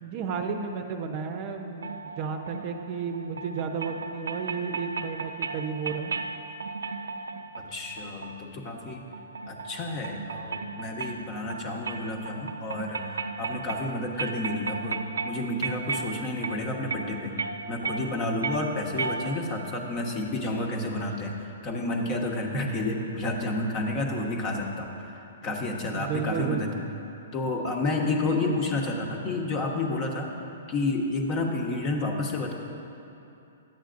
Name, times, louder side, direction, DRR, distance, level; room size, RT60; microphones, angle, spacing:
voice 1, 0.0-6.1 25.9-26.8 28.1-28.6, right 5 dB, 40° right, 5 dB, 0.6 m, -32 dB
sound 1, 1.8-19.7, right 4 dB, 80° right, 0.4 m, -36 dB
voice 2, 7.5-9.1 9.5-17.4 17.7-26.7 27.3-30.3 30.7-32.5, left 2 dB, 35° left, 1 dB, 1.1 m, -30 dB
12.0 x 8.0 x 2.6 m, 2.8 s
hypercardioid pair, 125°, 0 cm